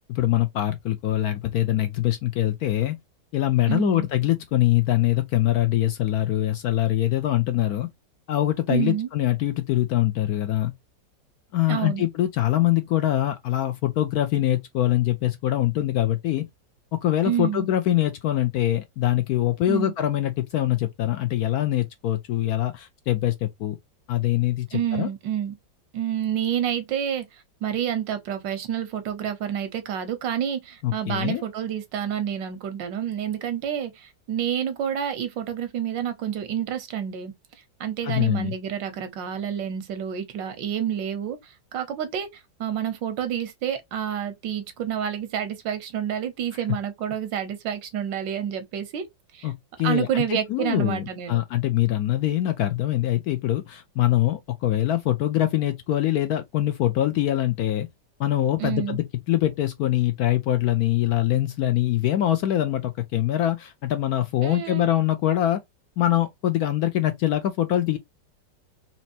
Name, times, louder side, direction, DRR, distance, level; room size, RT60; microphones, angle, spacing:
voice 1, 0.1-3.0 3.3-7.9 8.3-10.7 11.5-16.5 16.9-23.8 24.1-25.1 30.8-31.4 38.0-38.5 49.4-57.9 58.2-65.6 66.0-68.0, left 13 dB, 70° left, 0.9 m, -23 dB
voice 2, 3.7-4.1 8.7-9.1 11.7-12.1 17.2-17.7 19.7-19.9 24.7-25.5 25.9-27.3 27.6-37.3 37.8-42.3 42.6-49.0 49.3-49.5 49.8-51.4 58.6-59.0 64.4-64.9, right 9 dB, 85° right, 1.5 m, -28 dB
4.3 x 2.9 x 2.6 m
omnidirectional pair, 2.0 m